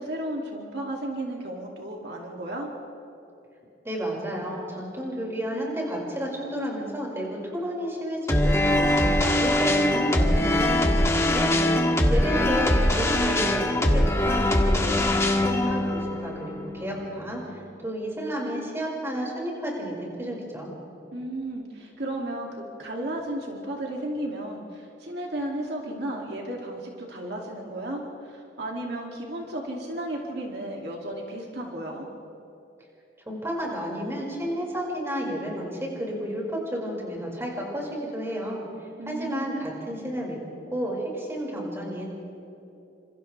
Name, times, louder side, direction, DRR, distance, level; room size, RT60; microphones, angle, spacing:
voice 1, 0.0-2.7 11.7-12.4 21.1-32.0 39.0-39.5, right 1 dB, 65° right, -1 dB, 2.6 m, -34 dB
voice 2, 3.8-20.7 33.2-38.7 39.0-40.4 40.7-42.1, equal, 15° right, -3 dB, 5.5 m, -32 dB
sound 1, 8.3-17.4, left 1 dB, 15° left, 1.7 m, -22 dB
29.5 x 27.0 x 3.4 m, 2.9 s
head